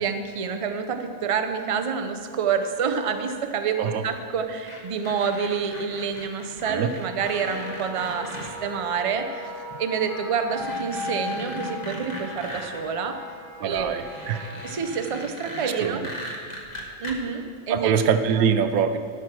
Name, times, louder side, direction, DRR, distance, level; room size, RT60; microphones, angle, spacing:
voice 1, 0.0-9.5 9.8-13.2 13.6-14.0 14.6-16.0 17.0-18.0, right 6 dB, 55° right, 6 dB, 0.3 m, -28 dB
sound 1, 4.7-8.5 9.7-9.8 10.3-12.8 13.7-17.1, equal, 30° left, 1.3 m, -38 dB
Wind instrument woodwind instrument, 7.0-14.7, left 3 dB, 75° left, 1.6 m, -38 dB
voice 2, 13.6-14.5 15.8-16.0 17.7-19.0, right 7 dB, 80° right, 10 dB, 1.1 m, -23 dB
12.5 x 6.0 x 6.0 m, 2.1 s
omnidirectional pair, 1.5 m